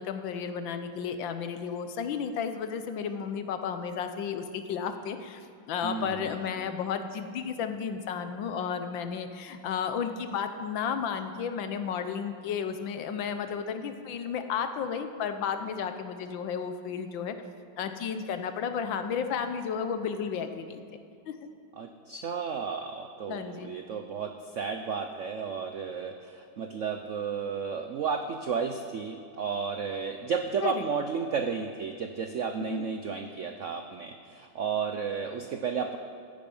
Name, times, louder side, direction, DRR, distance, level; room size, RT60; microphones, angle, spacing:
voice 1, 0.0-5.4 5.7-17.3 17.8-20.8 21.3-21.4 23.3-23.7 30.6-30.8 32.7-32.8, left 7 dB, 80° left, 8 dB, 1.6 m, -33 dB
voice 2, 5.8-6.3 21.8-36.0, right 6 dB, 75° right, 6 dB, 0.7 m, -33 dB
15.5 x 9.1 x 5.4 m, 2.4 s
omnidirectional pair, 2.1 m